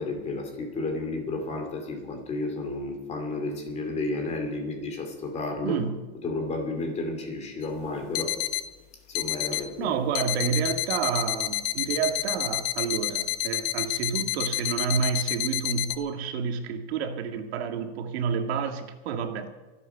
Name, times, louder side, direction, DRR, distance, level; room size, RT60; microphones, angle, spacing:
voice 1, 0.0-5.8 6.2-8.4 9.1-9.9, left 2 dB, 20° left, 4 dB, 2.8 m, -32 dB
voice 2, 5.6-6.1 9.5-19.5, right 6 dB, 80° right, 5 dB, 2.0 m, -29 dB
sound 1, 7.6-7.7 8.2-8.7 9.1-9.7 10.2-16.0, left 14 dB, 50° left, 0.8 m, -29 dB
24.0 x 8.3 x 5.8 m, 1.2 s
supercardioid pair, 165°, 31 cm